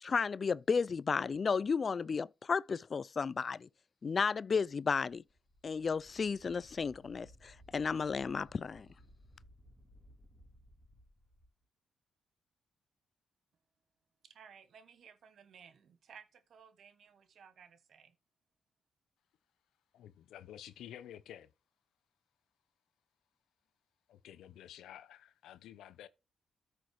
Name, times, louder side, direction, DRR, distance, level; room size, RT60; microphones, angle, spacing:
voice 1, 0.0-3.7 4.0-5.2 5.6-8.9, left 5 dB, 50° left, 0.3 m, -33 dB
Wind, 5.2-11.5, equal, 10° right, 3.7 m, -60 dB
voice 2, 14.2-18.1, right 7 dB, 70° right, 1.2 m, -58 dB
voice 3, 19.9-21.5 24.1-26.1, left 11 dB, 80° left, 0.7 m, -51 dB
13.5 x 6.2 x 3.1 m
supercardioid pair, 50°, 0 cm